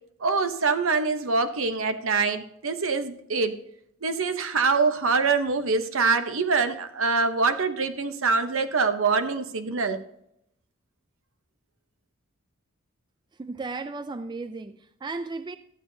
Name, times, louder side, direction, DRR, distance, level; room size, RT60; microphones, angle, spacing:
voice 1, 0.2-3.5 4.0-10.0, right 4 dB, 70° right, 0.9 m, -24 dB
voice 2, 13.4-15.6, right 3 dB, 20° right, 0.3 m, -35 dB
12.5 x 8.5 x 2.7 m
head